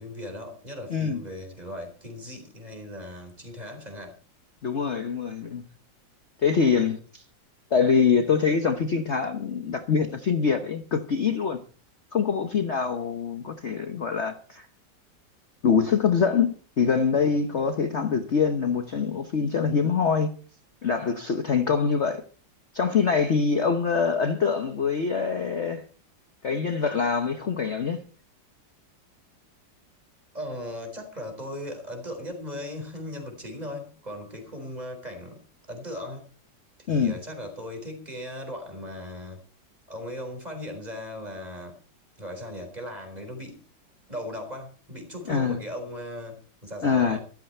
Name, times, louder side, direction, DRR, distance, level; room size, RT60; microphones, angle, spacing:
voice 1, 0.0-4.2 30.3-35.4 35.7-36.3 36.8-39.4 39.9-41.8 42.2-43.6 44.1-47.2, left 1 dB, 20° right, 4.3 m, -38 dB
voice 2, 0.9-1.2 4.6-5.6 6.4-7.2 7.7-11.6 12.1-14.6 15.6-20.3 20.8-22.2 22.7-25.9 26.4-28.0 36.9-37.2 45.3-45.6 46.8-47.2, left 6 dB, 45° left, 1.1 m, -24 dB
13.5 x 13.5 x 4.4 m
omnidirectional pair, 2.0 m